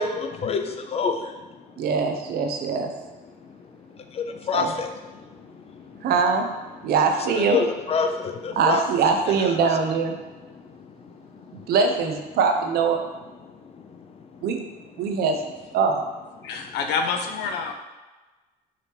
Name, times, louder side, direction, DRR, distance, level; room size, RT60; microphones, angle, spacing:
voice 1, 0.0-1.3 4.1-4.9 5.9-6.0 7.4-8.8, left 5 dB, 35° left, 0.5 m, -26 dB
voice 2, 1.8-2.9 4.5-4.7 6.0-6.5 6.8-7.6 8.6-10.2 11.5-13.0 14.4-14.6 15.0-15.4 15.7-16.0, right 5 dB, 65° right, 0.6 m, -22 dB
voice 3, 16.4-17.7, left 5 dB, 85° left, 0.6 m, -27 dB
4.9 x 2.9 x 3.3 m
cardioid pair, 110°, 17 cm